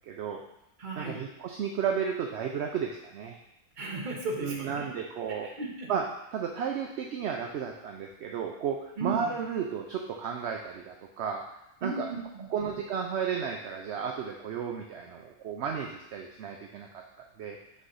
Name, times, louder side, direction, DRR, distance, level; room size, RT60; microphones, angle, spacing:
voice 1, 0.1-0.4 1.0-3.4 4.4-5.5 5.9-6.0 6.3-11.4 11.8-12.1 12.5-16.9 17.4-17.6, right 7 dB, 60° right, 1 dB, 0.7 m, -33 dB
voice 2, 0.8-1.2 3.8-5.1 5.4-5.9 9.0-9.4 11.8-12.8, right 2 dB, 35° right, 0 dB, 1.1 m, -36 dB
6.3 x 3.2 x 5.5 m, 0.84 s
omnidirectional pair, 1.5 m